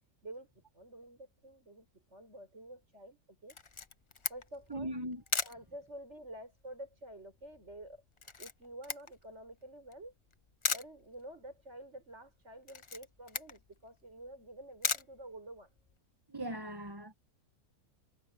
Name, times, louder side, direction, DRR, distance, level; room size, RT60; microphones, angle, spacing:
voice 1, 0.2-3.6 4.3-4.9 5.4-8.0 8.4-10.1 10.7-15.7, right 1 dB, 50° right, 6.7 m, -49 dB
Camera, 3.5-16.0, left 4 dB, 35° left, 0.5 m, -40 dB
voice 2, 4.7-5.2 16.3-17.1, right 1 dB, 15° right, 1.3 m, -39 dB
omnidirectional pair, 1.6 m